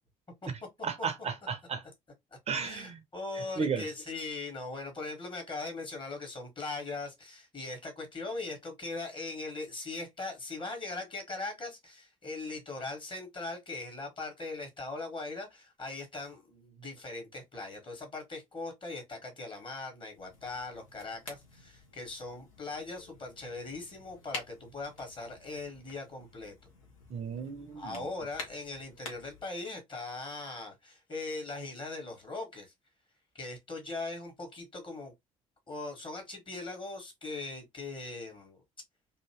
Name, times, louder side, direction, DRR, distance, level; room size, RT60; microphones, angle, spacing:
voice 1, 0.8-1.8 2.5-3.0 3.3-3.9 27.1-28.1, right 5 dB, 35° right, 0.6 m, -34 dB
voice 2, 2.6-26.5 27.7-32.7 33.3-35.1 35.7-38.6, left 3 dB, 30° left, 1.6 m, -40 dB
sound 1, 20.1-29.5, left 3 dB, 75° left, 0.9 m, -49 dB
2.8 x 2.7 x 2.9 m
figure-of-eight pair, 50°, 18 cm